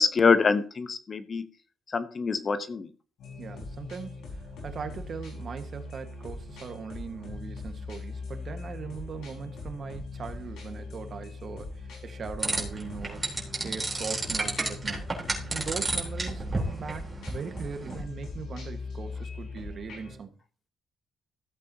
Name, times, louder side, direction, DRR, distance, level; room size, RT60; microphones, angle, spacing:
voice 1, 0.0-1.5 1.9-2.9, left 5 dB, 40° left, 1.0 m, -25 dB
sound 1, 3.2-20.2, left 3 dB, 75° left, 5.2 m, -41 dB
voice 2, 3.4-13.2 13.6-15.1 15.5-20.3, right 5 dB, 50° right, 1.5 m, -40 dB
sound 2, 12.4-18.0, right 2 dB, 20° right, 3.8 m, -32 dB
15.0 x 8.3 x 2.9 m
cardioid pair, 90°, 0 cm